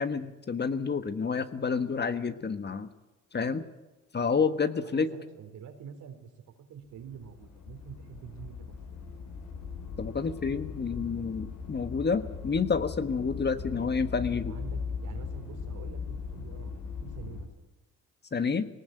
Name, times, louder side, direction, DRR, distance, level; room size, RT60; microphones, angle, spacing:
voice 1, 0.0-2.9 3.3-3.7 4.1-5.1 10.0-14.5 18.3-18.7, left 5 dB, 35° left, 10 dB, 1.5 m, -29 dB
voice 2, 4.8-6.3 6.7-9.0 13.7-13.9 14.3-17.5, right 7 dB, 75° right, 6 dB, 3.7 m, -46 dB
sound 1, 7.0-17.4, left 5 dB, 65° left, 4.9 m, -39 dB
19.0 x 19.0 x 9.2 m, 1.1 s
cardioid pair, 90°, 30 cm